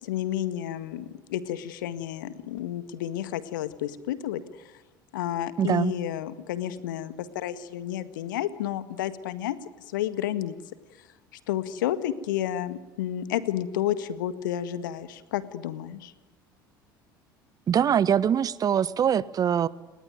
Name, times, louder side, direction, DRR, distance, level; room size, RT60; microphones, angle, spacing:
voice 1, 0.0-4.4 5.1-9.6 9.9-10.5 11.5-16.1, left 12 dB, 65° left, 13 dB, 1.7 m, -31 dB
voice 2, 5.6-5.9 17.7-19.7, right 8 dB, 35° right, 19 dB, 1.2 m, -23 dB
30.0 x 20.0 x 9.5 m, 1.2 s
figure-of-eight pair, 65°, 11 cm